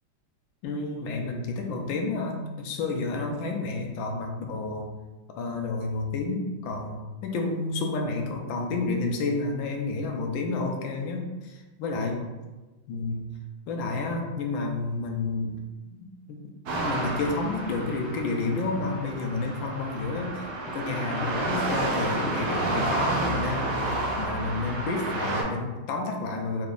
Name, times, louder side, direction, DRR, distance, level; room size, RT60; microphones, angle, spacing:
voice 1, 0.6-4.9 5.4-12.2 12.9-13.3 13.7-15.6 16.3-16.4 16.7-23.8 24.2-26.7, left 3 dB, 75° left, 2 dB, 1.3 m, -30 dB
sound 1, 16.7-25.4, right 2 dB, 65° right, 1.3 m, -30 dB
3.8 x 3.4 x 2.4 m, 1.2 s
omnidirectional pair, 2.3 m